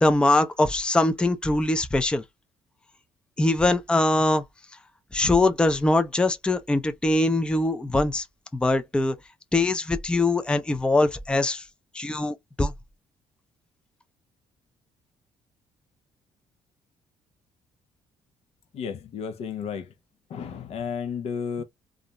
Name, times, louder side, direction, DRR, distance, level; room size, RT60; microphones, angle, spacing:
voice 1, 0.0-2.2 3.4-4.4 5.1-8.2 8.5-9.1 9.5-11.6 11.9-12.7, left 2 dB, 10° left, 0.4 m, -22 dB
voice 2, 18.7-19.9 20.3-21.6, left 7 dB, 65° left, 0.6 m, -32 dB
2.4 x 2.1 x 2.8 m
cardioid pair, 90°, 11 cm